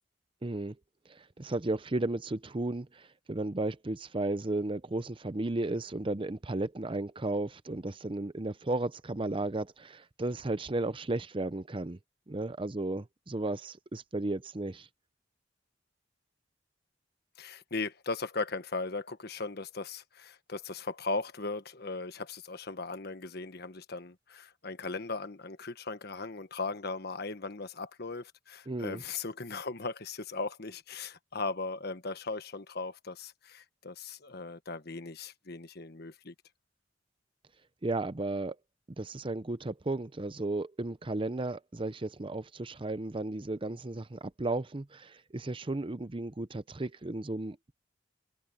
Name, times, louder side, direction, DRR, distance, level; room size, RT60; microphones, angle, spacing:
voice 1, 0.4-0.8 1.1-12.0 12.3-14.9 28.7-29.0 37.8-38.6 39.0-47.7, right 2 dB, 30° right, 0.7 m, -34 dB
voice 2, 17.4-36.3, left 3 dB, 60° left, 1.4 m, -38 dB
head